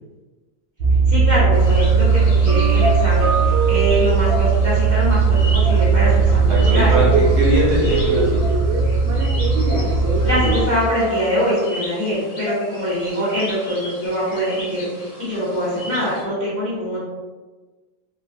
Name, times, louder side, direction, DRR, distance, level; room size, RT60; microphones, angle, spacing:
sound 1, 0.8-10.6, right 5 dB, 85° right, 1.5 m, -17 dB
voice 1, 1.1-6.9 10.2-17.0, equal, 70° left, -11 dB, 0.4 m, -23 dB
sound 2, 1.5-16.2, left 1 dB, 50° left, 0.9 m, -31 dB
voice 2, 6.5-8.5, equal, 65° right, -5 dB, 1.0 m, -22 dB
3.7 x 2.3 x 2.4 m, 1.3 s
omnidirectional pair, 2.2 m